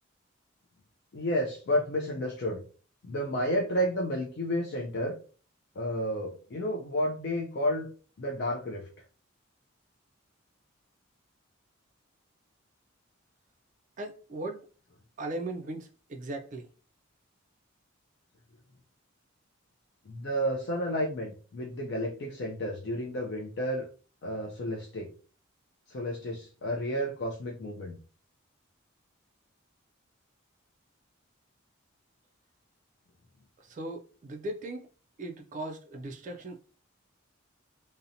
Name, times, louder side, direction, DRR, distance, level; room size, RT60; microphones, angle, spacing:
voice 1, 1.1-2.6 3.0-5.2 5.8-7.9 8.2-8.9 20.1-23.9 24.2-25.1 25.9-28.0, equal, 55° left, 0.4 m, -31 dB
voice 2, 14.0-14.6 15.2-16.7 33.6-34.9 35.2-36.6, right 2 dB, 35° right, 0.3 m, -38 dB
2.7 x 2.0 x 2.5 m
head